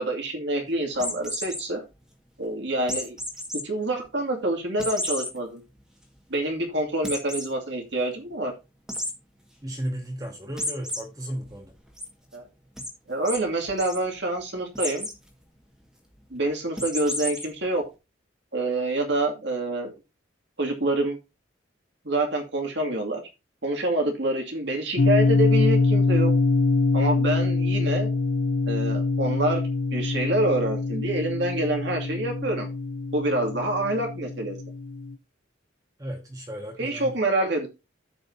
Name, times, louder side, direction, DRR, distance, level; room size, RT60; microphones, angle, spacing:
voice 1, 0.0-1.8 2.4-3.2 3.6-5.6 6.3-8.5 12.3-12.4 13.1-15.1 16.3-17.8 18.5-19.9 20.6-21.2 22.0-23.2 23.6-26.3 26.9-28.1 28.7-29.6 29.9-32.7 33.1-34.6 36.8-37.7, right 2 dB, 65° right, 2.4 m, -26 dB
sound 1, 0.9-1.6 2.9-3.6 4.1-4.2 4.8-5.3 5.8-5.9 6.2-6.3 7.0-7.5 8.9-9.1 10.6-11.0 11.4-12.0 12.8-12.9 13.3-13.4 13.7-14.0 14.8-15.2 16.8-17.5, left 1 dB, 5° right, 1.7 m, -31 dB
voice 2, 9.6-11.7 36.0-37.2, right 1 dB, 20° right, 1.5 m, -34 dB
sound 2, 25.0-35.1, left 3 dB, 70° left, 0.6 m, -24 dB
14.5 x 5.1 x 2.7 m
head